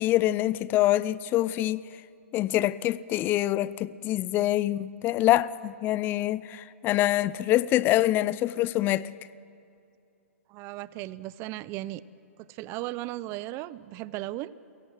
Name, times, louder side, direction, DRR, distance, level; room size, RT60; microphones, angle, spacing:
voice 1, 0.0-1.8 2.3-9.1, left 15 dB, 25° left, 0.6 m, -25 dB
voice 2, 10.5-12.0 12.4-14.5, right 16 dB, 30° right, 0.7 m, -36 dB
29.5 x 17.5 x 7.7 m
hypercardioid pair, 130°, 8 cm